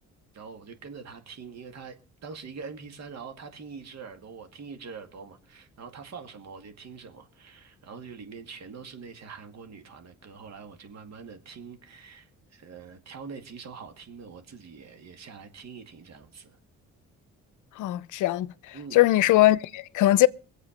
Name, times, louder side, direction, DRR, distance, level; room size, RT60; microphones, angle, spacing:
voice 1, 0.3-2.0 2.2-16.5 18.7-19.1, right 5 dB, 60° right, 2.3 m, -44 dB
voice 2, 17.8-20.3, left 16 dB, 80° left, 0.6 m, -21 dB
22.0 x 8.0 x 5.2 m
cardioid pair, 90°, 30 cm